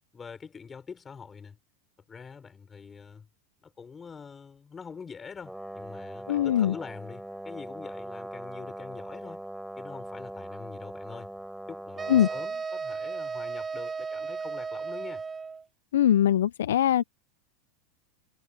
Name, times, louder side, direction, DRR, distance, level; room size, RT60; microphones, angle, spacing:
voice 1, 0.1-1.6 2.1-3.3 3.6-9.4 9.8-11.3 11.7-15.2, left 6 dB, 20° left, 4.8 m, -44 dB
Brass instrument, 5.4-12.5, right 1 dB, 5° right, 5.7 m, -41 dB
voice 2, 6.3-6.7 12.1-12.3 15.9-17.0, left 11 dB, 80° left, 0.5 m, -22 dB
sound 1, 12.0-15.6, right 5 dB, 20° right, 1.2 m, -35 dB
hypercardioid pair, 100°, 0 cm